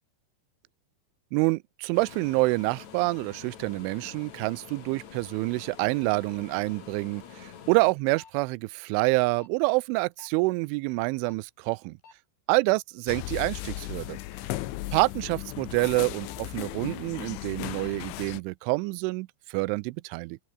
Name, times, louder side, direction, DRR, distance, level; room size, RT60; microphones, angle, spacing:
voice 1, 1.3-12.0 12.5-12.8 13.1-14.2 14.9-20.4, right 25 dB, 85° right, 3.0 m, -27 dB
sound 1, 1.9-7.9, left 8 dB, 45° left, 2.9 m, -47 dB
sound 2, 8.1-8.3 9.3-9.5 10.2-10.4 11.2-11.4 12.0-12.2 14.7-15.1 15.8-15.9 16.3-16.4 16.8-16.9, left 5 dB, 65° left, 8.1 m, -51 dB
sound 3, 13.1-18.4, left 17 dB, 80° left, 3.4 m, -36 dB
open air
omnidirectional pair, 5.6 m